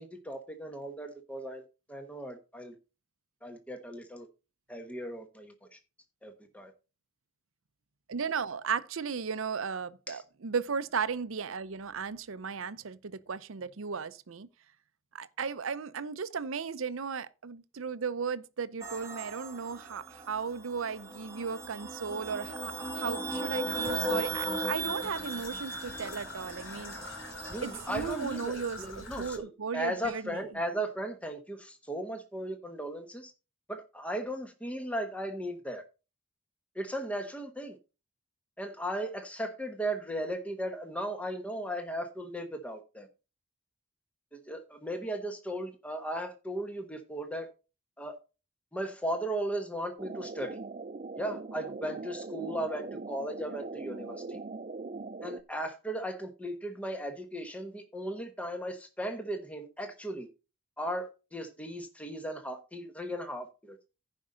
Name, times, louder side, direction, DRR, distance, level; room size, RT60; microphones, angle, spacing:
voice 1, 0.0-1.6 1.9-2.7 3.4-4.3 4.7-5.8 6.2-6.7 10.1-10.2 27.5-33.3 33.7-35.8 36.7-37.8 38.6-43.1 44.3-47.5 48.0-48.2 48.7-50.6 51.1-54.4 55.2-60.3 60.8-63.8, right 1 dB, 5° left, 1.1 m, -37 dB
voice 2, 8.1-14.5 15.1-27.0 27.6-30.4, right 6 dB, 80° right, 0.6 m, -35 dB
sound 1, 18.8-28.5, right 2 dB, 15° right, 1.5 m, -37 dB
Traffic noise roadway noise / Trickle dribble, 23.7-29.4, left 4 dB, 65° left, 1.7 m, -44 dB
sound 2, 50.0-55.4, right 3 dB, 35° right, 0.4 m, -41 dB
15.0 x 5.3 x 3.8 m
head